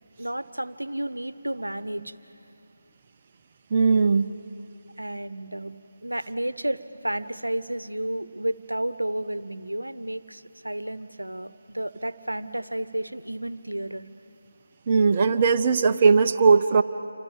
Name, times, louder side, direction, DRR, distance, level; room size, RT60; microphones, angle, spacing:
voice 1, 0.2-2.2 5.0-5.8 6.0-14.1, right 1 dB, 85° right, 15 dB, 0.9 m, -32 dB
voice 2, 3.7-4.3 14.9-16.8, right 5 dB, 30° right, 5 dB, 0.8 m, -19 dB
28.0 x 26.0 x 7.3 m, 2.6 s
figure-of-eight pair, 155°, 0 cm